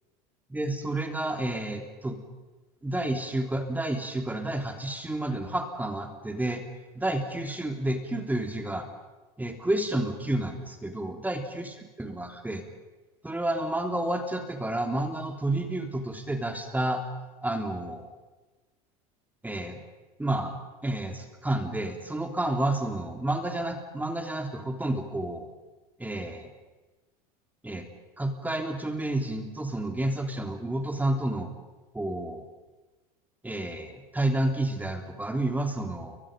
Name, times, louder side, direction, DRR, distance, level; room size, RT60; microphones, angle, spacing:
voice 1, 0.5-2.2 2.8-6.6 6.9-8.9 9.4-11.7 12.0-12.6 13.2-17.0 17.4-18.1 19.4-19.8 20.2-20.5 20.8-25.5 26.0-26.5 27.6-27.9 28.2-31.5 31.9-32.5 33.4-36.2, right 1 dB, 10° right, 4 dB, 3.3 m, -30 dB
30.0 x 23.5 x 5.4 m, 1.2 s
hypercardioid pair, 90°, 19 cm